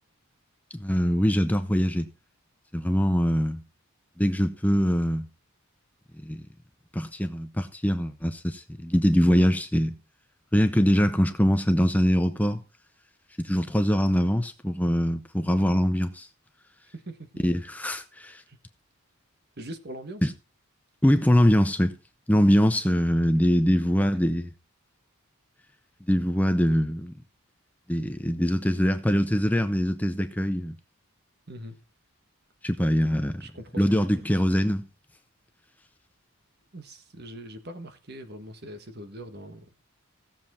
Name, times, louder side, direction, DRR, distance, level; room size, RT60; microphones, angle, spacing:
voice 1, 0.7-2.1 2.7-3.6 4.2-5.3 6.2-6.4 6.9-9.9 10.5-12.6 13.4-16.3 17.4-18.4 20.2-20.3 21.0-21.9 22.3-24.5 26.1-27.1 27.9-30.8 32.6-33.4 33.8-34.8, equal, 5° left, 0.6 m, -23 dB
voice 2, 16.9-17.3 18.5-18.6 19.6-20.3 31.5-31.8 32.9-33.0 33.4-34.2 36.7-39.7, right 1 dB, 45° right, 1.5 m, -42 dB
16.5 x 7.4 x 4.3 m
head